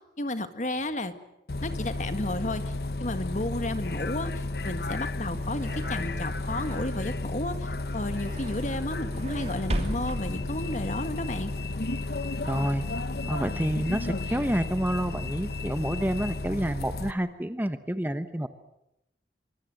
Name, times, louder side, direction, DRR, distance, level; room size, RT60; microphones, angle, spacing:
voice 1, 0.2-1.1 1.6-2.7 3.0-11.5, left 1 dB, 40° left, 9 dB, 1.8 m, -32 dB
Bus, 1.5-17.1, left 2 dB, 60° left, 1.0 m, -33 dB
sound 1, 5.0-11.4, right 1 dB, 35° right, 2.9 m, -38 dB
voice 2, 12.4-12.9 13.3-18.5, right 1 dB, 10° right, 10 dB, 0.9 m, -29 dB
25.0 x 24.0 x 7.7 m, 0.87 s
head